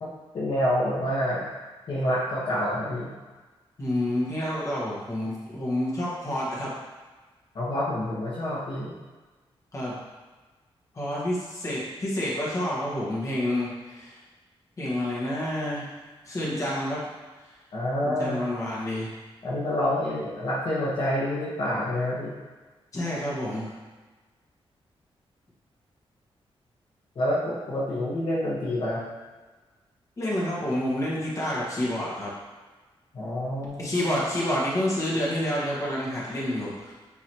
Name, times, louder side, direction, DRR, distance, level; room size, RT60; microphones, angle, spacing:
voice 1, 0.0-1.5 1.9-3.1 7.5-8.9 17.7-18.4 19.4-22.3 27.1-29.0 33.1-33.9, left 1 dB, 55° left, -7 dB, 1.4 m, -27 dB
voice 2, 3.8-6.7 9.7-10.0 10.9-14.2 14.8-15.9 16.3-17.0 17.4-17.5 18.0-19.1 22.9-23.7 30.2-32.3 33.8-36.9, left 1 dB, 30° left, -6 dB, 1.7 m, -28 dB
9.5 x 4.0 x 3.1 m, 1.3 s
wide cardioid pair, 150°, 10 cm